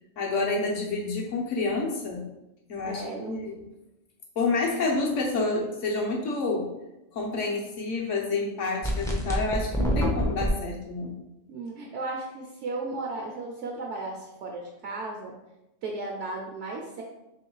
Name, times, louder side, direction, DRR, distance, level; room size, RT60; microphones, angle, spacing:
voice 1, 0.2-2.2 2.7-3.6 4.4-6.7 7.1-11.1, left 3 dB, 75° left, -1 dB, 1.3 m, -28 dB
voice 2, 2.8-3.3 11.5-15.3 15.8-17.0, right 2 dB, 70° right, 0 dB, 0.9 m, -35 dB
sound 1, 8.8-10.5, equal, 5° left, 0.3 m, -26 dB
3.2 x 3.1 x 4.5 m, 0.94 s
omnidirectional pair, 1.3 m